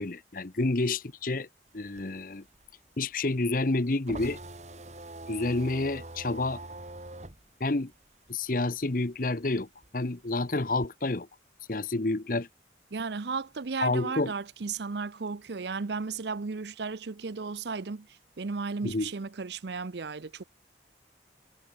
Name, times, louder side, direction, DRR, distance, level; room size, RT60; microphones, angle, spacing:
voice 1, 0.0-1.5 1.7-2.4 3.0-4.4 5.3-6.6 7.6-7.9 8.3-9.7 9.9-11.3 11.7-12.5 13.8-14.3 18.8-19.1, left 2 dB, 50° left, 0.9 m, -29 dB
sound 1, 1.7-8.8 9.1-10.9, right 2 dB, 40° right, 2.5 m, -44 dB
voice 2, 12.9-20.4, right 4 dB, 65° right, 0.6 m, -35 dB
head